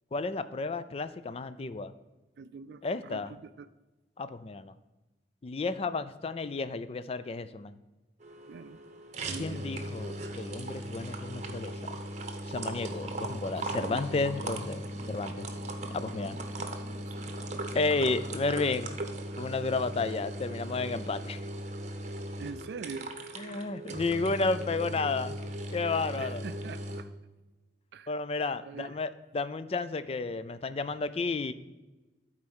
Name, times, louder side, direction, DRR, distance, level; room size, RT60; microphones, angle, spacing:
voice 1, 0.1-1.9 2.8-3.3 4.2-4.7 5.4-7.7 9.4-12.0 12.5-15.5 15.9-16.4 17.7-18.9 19.4-21.4 23.4-25.4 25.7-26.4 28.1-31.5, left 3 dB, 35° left, 13 dB, 0.4 m, -32 dB
voice 2, 2.4-3.7 8.5-8.8 9.3-9.8 13.0-13.2 13.7-14.0 17.0-17.3 22.4-23.1 26.2-27.1 27.9-28.1 28.6-29.0, right 5 dB, 65° right, 14 dB, 0.3 m, -44 dB
sound 1, 8.2-27.0, right 1 dB, 40° right, 0.8 m, -38 dB
8.4 x 4.4 x 6.1 m, 1.1 s
head